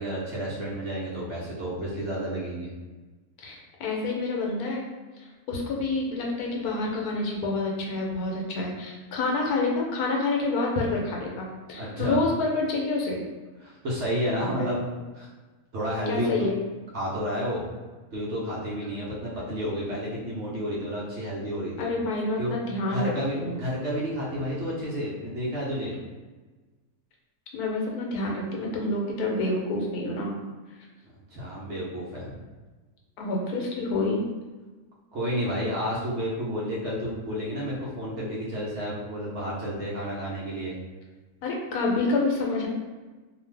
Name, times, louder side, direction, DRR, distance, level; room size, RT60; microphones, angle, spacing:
voice 1, 0.0-2.7 11.8-12.2 13.6-14.8 15.2-15.3 15.7-16.3 16.9-17.7 18.1-21.9 22.4-22.5 22.9-25.9 31.3-32.3 35.1-40.7, equal, 60° right, -6 dB, 0.9 m, -31 dB
voice 2, 3.4-4.8 5.2-13.2 14.6-14.7 16.1-16.6 21.8-23.6 27.5-30.3 33.2-34.2 41.4-42.7, left 2 dB, 80° left, -1 dB, 1.1 m, -28 dB
2.5 x 2.4 x 3.2 m, 1.3 s
omnidirectional pair, 1.6 m